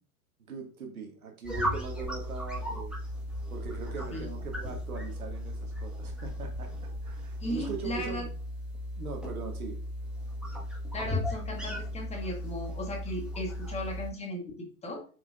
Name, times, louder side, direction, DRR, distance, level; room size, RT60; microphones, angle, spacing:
voice 1, 0.5-3.0 3.5-8.3 9.0-9.8, right 5 dB, 70° right, 4 dB, 1.5 m, -40 dB
sound 1, 1.4-14.1, left 1 dB, ahead, 1.4 m, -36 dB
voice 2, 7.4-8.2 10.9-15.0, left 1 dB, 15° left, 1 dB, 1.5 m, -36 dB
8.1 x 4.7 x 2.4 m, 0.38 s
figure-of-eight pair, 95°, 45 cm